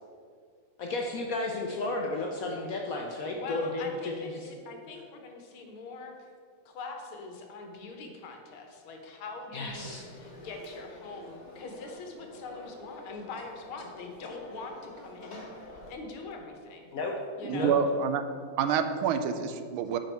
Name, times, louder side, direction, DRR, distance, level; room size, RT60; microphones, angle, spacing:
voice 1, 0.8-4.5 9.5-10.0 16.9-17.1 17.5-17.7, left 2 dB, 70° left, 1 dB, 0.8 m, -33 dB
voice 2, 3.4-6.1 6.7-15.4 15.9-16.9 17.4-17.7, left 3 dB, 90° left, 3 dB, 1.9 m, -43 dB
Conversation / Crowd, 9.7-15.9, left 1 dB, 35° left, 0.7 m, -48 dB
voice 3, 17.4-18.2 18.6-20.0, right 6 dB, 85° right, 9 dB, 1.4 m, -27 dB
9.0 x 5.1 x 4.4 m, 2.1 s
omnidirectional pair, 2.2 m